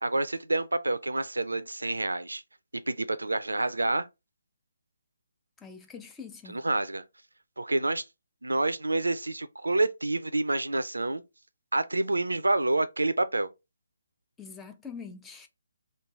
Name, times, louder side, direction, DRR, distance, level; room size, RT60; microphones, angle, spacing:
voice 1, 0.0-2.4 2.9-4.1 6.5-7.0 7.6-8.0 8.4-11.2 11.7-13.5, right 2 dB, 75° right, 0.4 m, -28 dB
voice 2, 5.6-6.6 14.4-15.5, left 5 dB, 10° left, 0.4 m, -44 dB
3.2 x 2.3 x 3.5 m
figure-of-eight pair, 140°, 0 cm